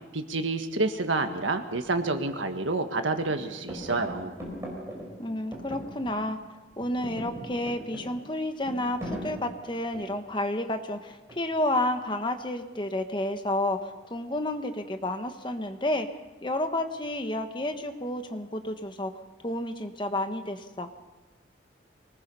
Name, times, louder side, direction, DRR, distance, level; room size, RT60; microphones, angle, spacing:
voice 1, 0.1-4.3, right 3 dB, 90° right, 7 dB, 1.7 m, -28 dB
sound 1, 3.3-6.4 6.7-10.3 11.3-11.8, equal, 15° right, 5.3 m, -40 dB
voice 2, 5.2-6.4 6.8-16.1 16.4-19.1 19.4-20.9, left 1 dB, 25° left, 7 dB, 1.2 m, -30 dB
24.5 x 19.5 x 5.5 m, 1.1 s
head